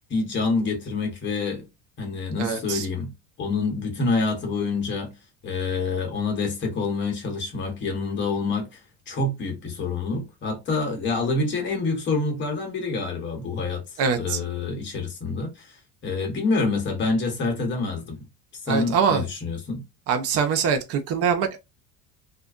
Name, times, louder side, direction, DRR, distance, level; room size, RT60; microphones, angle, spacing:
voice 1, 0.1-1.6 2.0-3.1 3.4-5.1 5.4-8.8 9.1-13.8 14.2-15.7 16.0-18.2 18.6-19.8, left 3 dB, 40° left, 1.0 m, -27 dB
voice 2, 2.4-2.9 14.0-14.4 18.7-19.2 20.1-21.6, right 6 dB, 55° right, 0.6 m, -23 dB
2.4 x 2.1 x 2.4 m
cardioid pair, 130°, 29 cm